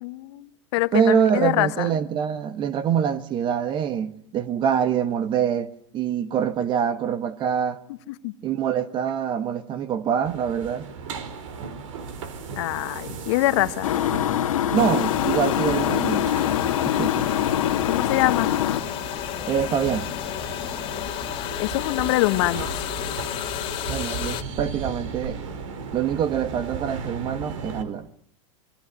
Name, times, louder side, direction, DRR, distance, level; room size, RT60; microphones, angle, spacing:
voice 1, 0.0-1.9 8.2-8.3 12.6-13.9 17.9-18.5 21.6-22.9, left 18 dB, 60° left, 1.3 m, -24 dB
voice 2, 0.9-7.8 8.4-10.9 14.7-16.3 17.0-17.3 19.5-20.1 23.9-25.4 25.9-28.1, right 8 dB, 30° right, 1.2 m, -25 dB
sound 1, 10.2-27.8, right 5 dB, 75° right, 4.4 m, -36 dB
sound 2, 13.8-18.8, left 11 dB, 85° left, 1.9 m, -24 dB
sound 3, 14.7-24.4, left 13 dB, 30° left, 2.2 m, -32 dB
26.5 x 22.5 x 9.5 m
supercardioid pair, 145°, 17 cm